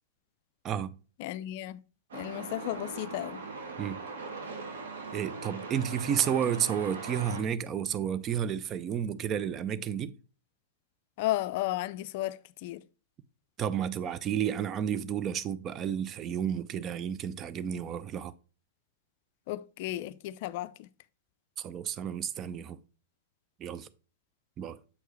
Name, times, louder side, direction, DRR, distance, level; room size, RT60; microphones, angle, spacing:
voice 1, 0.6-1.0 3.8-4.0 5.1-10.1 13.6-18.3 21.6-22.8 23.6-23.9 24.6-24.8, right 8 dB, 30° right, 0.5 m, -31 dB
voice 2, 1.2-1.8 2.1-3.4 11.2-12.8 19.5-20.9, left 15 dB, 55° left, 0.3 m, -34 dB
Truck, 2.1-7.4, right 4 dB, 75° right, 1.4 m, -40 dB
7.1 x 4.5 x 3.2 m
hypercardioid pair, 105°, 0 cm